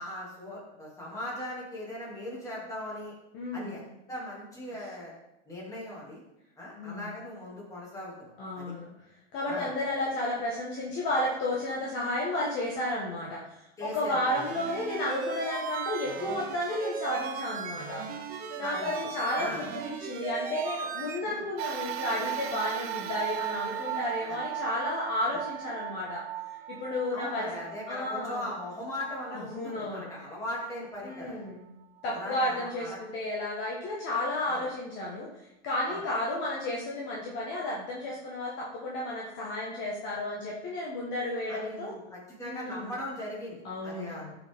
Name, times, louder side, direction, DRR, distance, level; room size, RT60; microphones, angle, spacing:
voice 1, 0.0-3.1 3.5-3.8 4.1-5.1 5.4-6.2 6.6-8.7 9.5-9.7 13.8-14.5 18.6-18.9 19.4-19.7 21.2-21.4 24.3-24.4 27.1-31.4 32.1-33.0 34.5-34.6 35.9-36.0 41.5-44.2, left 1 dB, 10° left, -5 dB, 2.6 m, -39 dB
voice 2, 3.3-3.8 6.8-7.1 8.4-8.9 9.3-13.4 13.8-18.0 18.6-26.2 26.7-27.5 27.9-28.5 29.3-30.1 31.0-31.6 32.0-35.3 35.6-41.9 42.4-42.9 43.6-44.4, left 1 dB, 35° left, -3 dB, 1.5 m, -32 dB
sound 1, 14.3-21.2, right 6 dB, 25° right, 0.8 m, -37 dB
sound 2, 21.6-30.2 30.8-30.9 32.0-32.1, right 12 dB, 60° right, 1.0 m, -37 dB
14.5 x 6.2 x 3.6 m, 0.88 s
supercardioid pair, 170°, 34 cm